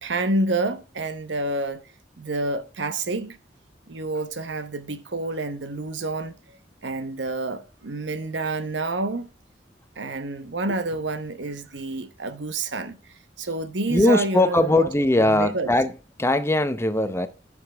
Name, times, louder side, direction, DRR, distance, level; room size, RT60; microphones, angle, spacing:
voice 1, 0.0-1.8 2.2-3.4 3.9-6.3 6.8-9.3 10.0-13.0 13.4-14.9 15.2-15.7, right 2 dB, 70° right, 1.0 m, -28 dB
voice 2, 13.9-15.9 16.2-17.3, left 1 dB, 15° left, 0.6 m, -20 dB
14.0 x 5.3 x 3.4 m
head